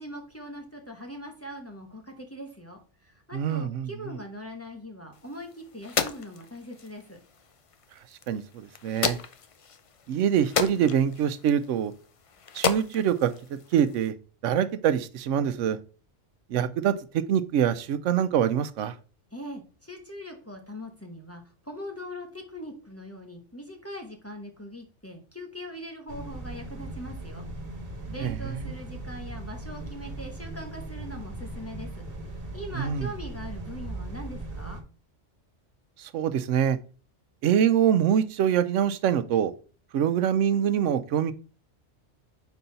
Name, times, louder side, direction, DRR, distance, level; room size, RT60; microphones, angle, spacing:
voice 1, 0.0-7.2 19.3-27.5 28.1-34.8, equal, 15° left, 1 dB, 1.0 m, -41 dB
voice 2, 3.3-3.9 8.3-9.2 10.1-11.9 12.5-14.1 14.4-15.8 16.5-18.9 28.2-28.7 32.8-33.1 36.0-36.8 37.4-39.5 39.9-41.3, right 9 dB, 85° right, 12 dB, 0.9 m, -25 dB
sound 1, 5.1-14.1, left 6 dB, 55° left, 0.3 m, -34 dB
sound 2, 26.1-34.8, right 2 dB, 50° right, 1.4 m, -38 dB
4.6 x 4.0 x 5.6 m, 0.37 s
omnidirectional pair, 1.2 m